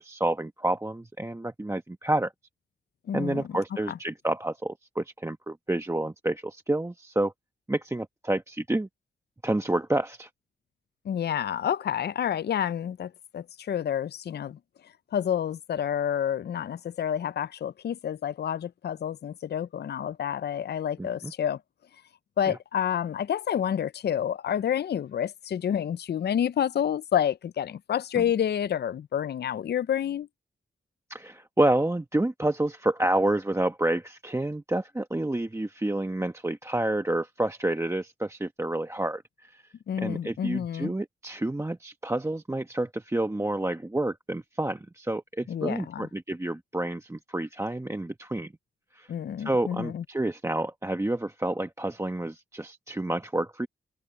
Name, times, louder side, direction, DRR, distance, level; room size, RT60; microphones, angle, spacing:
voice 1, 0.0-2.3 3.1-7.3 7.7-8.9 9.4-10.3 21.0-21.3 28.2-28.3 31.1-39.6 40.0-48.5 48.9-49.1 49.4-53.7, right 1 dB, 15° right, 1.1 m, -29 dB
voice 2, 3.1-3.4 3.9-4.0 11.1-14.6 15.1-21.6 22.4-30.3 39.9-40.9 45.5-46.1 49.1-50.0, left 9 dB, 55° left, 0.5 m, -29 dB
cardioid pair, 75°, 20 cm